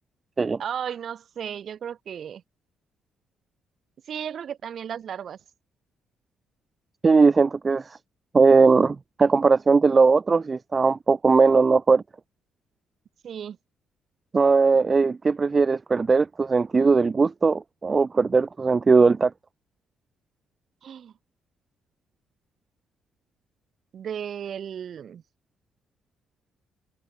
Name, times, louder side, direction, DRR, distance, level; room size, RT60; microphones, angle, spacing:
voice 1, 0.6-2.4 4.1-5.4 13.2-13.6 20.8-21.1 23.9-25.2, right 8 dB, 55° right, 5.5 m, -34 dB
voice 2, 7.0-8.0 8.3-12.0 14.3-19.3, right 4 dB, 30° right, 4.2 m, -19 dB
cardioid pair, 90°, 0 cm